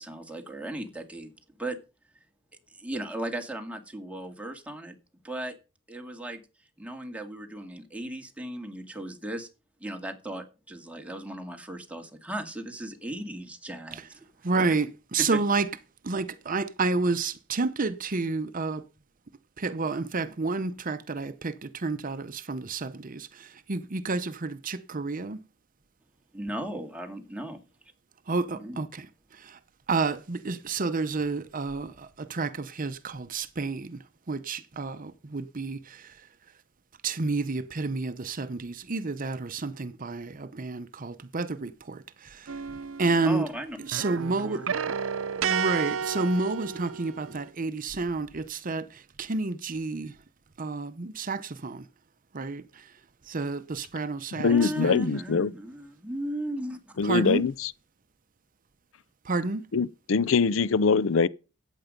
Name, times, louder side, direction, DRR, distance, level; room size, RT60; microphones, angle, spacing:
voice 1, 0.0-1.3 1.6-1.8 2.7-5.0 5.2-5.5 5.9-6.4 6.8-9.5 9.8-14.1 14.6-14.7 15.3-15.4 26.3-27.7 28.5-28.8 43.2-44.6 54.5-56.8, right 1 dB, 5° right, 2.1 m, -36 dB
voice 2, 14.4-15.7 16.0-18.8 19.6-25.4 28.3-29.1 29.3-29.6 29.9-36.2 37.0-42.6 43.0-43.4 43.9-44.6 45.4-50.2 50.6-51.8 52.3-52.9 53.3-55.0 57.0-57.4 59.2-59.7, right 3 dB, 45° right, 0.8 m, -30 dB
sound 1, 42.5-43.5 43.8-47.4, right 7 dB, 85° right, 0.7 m, -32 dB
voice 3, 54.4-55.5 57.0-57.7 59.7-61.3, left 5 dB, 75° left, 0.5 m, -23 dB
14.0 x 9.1 x 5.2 m
head